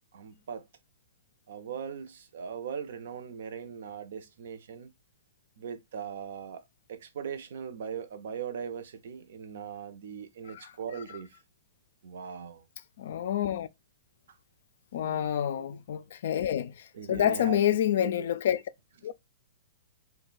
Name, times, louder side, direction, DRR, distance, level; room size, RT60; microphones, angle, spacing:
voice 1, 0.1-0.6 1.5-4.9 5.6-11.3 12.0-12.6 15.0-15.3 15.6-15.8 16.9-17.6 18.0-18.3, right 7 dB, 65° right, 0.6 m, -40 dB
voice 2, 13.0-13.7 14.9-18.6 19.0-19.1, left 10 dB, 60° left, 0.3 m, -28 dB
2.5 x 2.2 x 3.9 m
hypercardioid pair, 160°, 0 cm